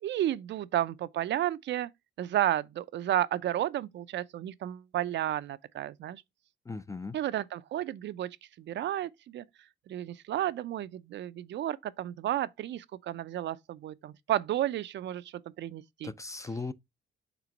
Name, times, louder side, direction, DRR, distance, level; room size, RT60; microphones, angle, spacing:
voice 1, 0.0-1.9 2.2-6.2 7.1-8.3 8.7-9.4 9.9-15.2 15.6-16.1, right 12 dB, 65° right, 0.5 m, -32 dB
voice 2, 6.7-7.2 16.0-16.7, left 3 dB, 15° left, 0.4 m, -37 dB
6.0 x 3.4 x 5.0 m
cardioid pair, 90°, 20 cm